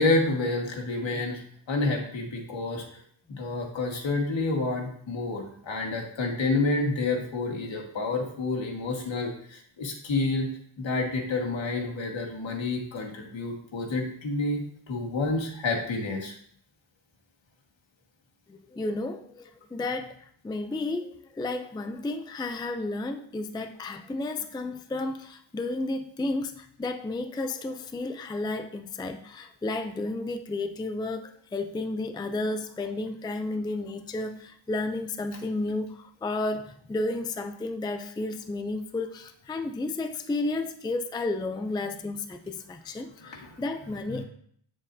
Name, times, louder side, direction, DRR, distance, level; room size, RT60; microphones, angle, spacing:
voice 1, 0.0-1.4 1.7-2.8 3.3-10.5 10.8-14.6 14.9-16.3 43.2-43.5, left 2 dB, 70° left, 1 dB, 1.8 m, -29 dB
voice 2, 18.5-44.2, left 2 dB, 10° left, 7 dB, 0.4 m, -32 dB
8.4 x 7.3 x 2.7 m, 0.63 s
wide cardioid pair, 135°, 47 cm